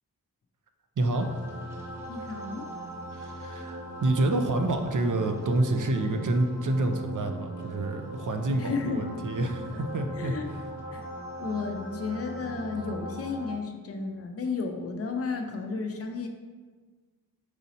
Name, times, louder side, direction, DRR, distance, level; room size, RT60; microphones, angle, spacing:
voice 1, 1.0-1.3 3.1-9.6 9.9-10.3, right 2 dB, 60° right, 5 dB, 0.5 m, -28 dB
sound 1, 1.1-13.5, right 1 dB, 5° right, 1.0 m, -40 dB
voice 2, 2.1-2.7 8.6-9.1 9.7-9.8 10.2-10.5 10.9-11.0 11.4-16.3, left 4 dB, 40° left, 4 dB, 0.5 m, -33 dB
4.8 x 2.7 x 4.0 m, 1.4 s
wide cardioid pair, 70°, 36 cm